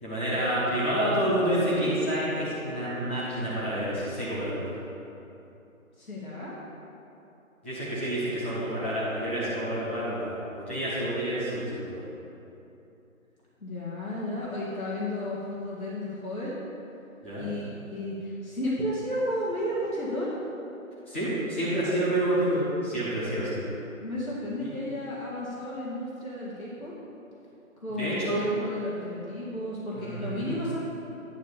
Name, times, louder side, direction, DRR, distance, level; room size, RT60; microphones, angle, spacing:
voice 1, 0.0-4.7 7.6-12.0 17.2-17.4 21.1-23.6 24.6-24.7 27.9-28.4 29.9-30.5, right 1 dB, 10° left, -11 dB, 1.1 m, -28 dB
voice 2, 6.0-6.6 13.6-16.6 17.4-20.4 24.0-26.9 27.8-30.8, left 1 dB, 90° left, -7 dB, 2.0 m, -33 dB
10.5 x 3.5 x 6.9 m, 2.9 s
figure-of-eight pair, 160°, 41 cm